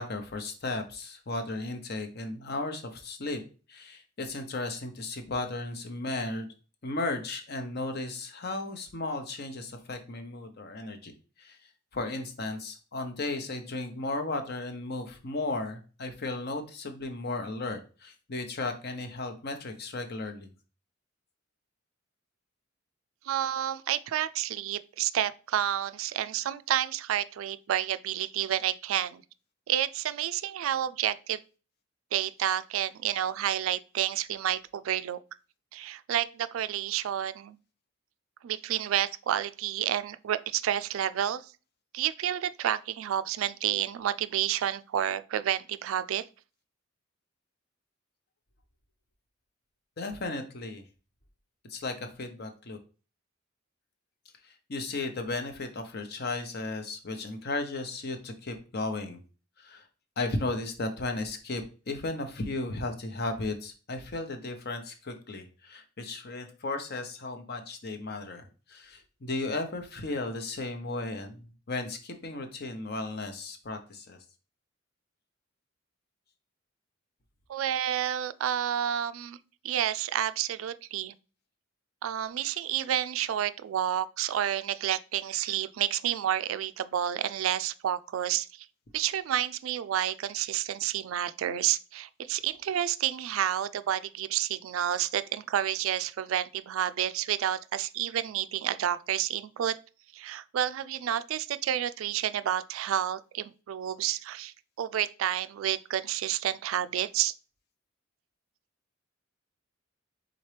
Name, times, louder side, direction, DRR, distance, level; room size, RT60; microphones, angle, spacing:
voice 1, 0.0-3.4 3.7-6.5 6.8-11.1 11.4-11.6 11.9-20.5 50.0-50.8 51.7-52.8 54.4-59.2 59.6-59.9 60.2-71.4 71.7-74.2, left 2 dB, 50° left, 0.7 m, -35 dB
voice 2, 23.2-29.2 29.7-31.4 32.1-35.2 35.7-37.6 38.4-41.5 41.9-46.3 77.5-79.4 79.6-81.1 82.0-88.7 88.9-99.8 100.1-107.3, right 11 dB, 85° right, 0.3 m, -30 dB
4.3 x 3.8 x 3.3 m
head